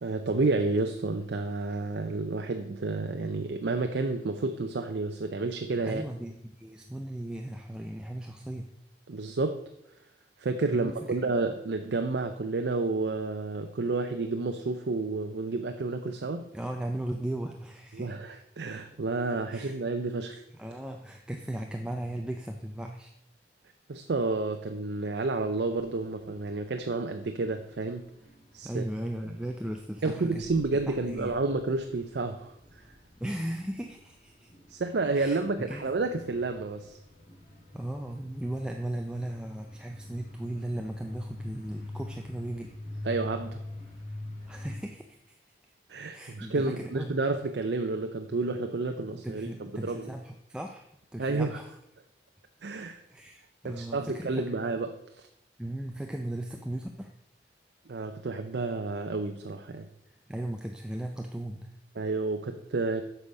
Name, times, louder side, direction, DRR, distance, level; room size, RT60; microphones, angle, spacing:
voice 1, 0.0-6.0 9.1-9.7 10.4-16.6 17.9-20.4 23.9-28.1 28.5-28.8 30.0-32.8 34.7-37.0 43.0-43.6 45.9-50.1 51.2-51.6 52.6-53.0 53.6-55.3 57.9-59.9 62.0-63.0, right 3 dB, 70° right, 6 dB, 0.5 m, -30 dB
voice 2, 5.8-8.7 10.7-11.2 16.5-18.2 19.5-19.8 20.6-23.1 28.6-30.4 30.9-31.4 33.2-34.5 35.1-35.9 37.7-43.1 44.5-45.4 46.1-47.2 49.1-50.9 51.1-51.7 53.1-54.5 55.6-57.1 60.1-61.8, right 1 dB, 5° right, 3 dB, 0.4 m, -37 dB
sound 1, 25.7-44.8, left 2 dB, 40° left, 2.6 m, -46 dB
8.2 x 5.6 x 5.4 m, 0.77 s
head